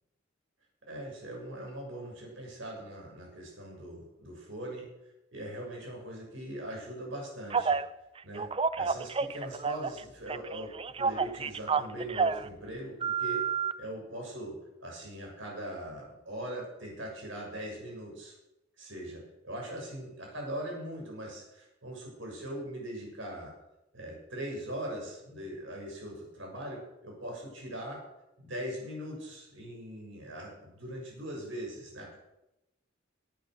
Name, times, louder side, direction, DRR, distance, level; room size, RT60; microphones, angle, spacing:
voice 1, 0.9-4.9 5.3-7.8 8.2-8.5 8.7-18.3 18.8-23.5 23.9-28.0 28.4-32.2, right 1 dB, 75° right, 0 dB, 6.7 m, -41 dB
Telephone, 7.5-7.9 8.4-10.0 10.3-12.5 13.0-13.7, right 5 dB, 30° right, 0.5 m, -29 dB
18.0 x 9.2 x 6.5 m, 0.90 s
head